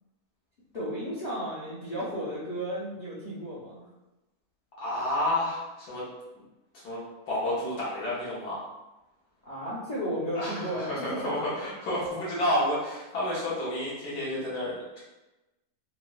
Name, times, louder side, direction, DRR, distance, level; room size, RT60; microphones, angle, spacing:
voice 1, 0.7-3.8 9.4-11.5, equal, 55° left, -9 dB, 0.4 m, -34 dB
voice 2, 4.8-6.0 6.3-6.4 6.7-7.0 7.3-8.6 10.3-15.0, left 1 dB, 90° left, -8 dB, 1.4 m, -30 dB
4.1 x 2.0 x 2.3 m, 1.0 s
omnidirectional pair, 1.7 m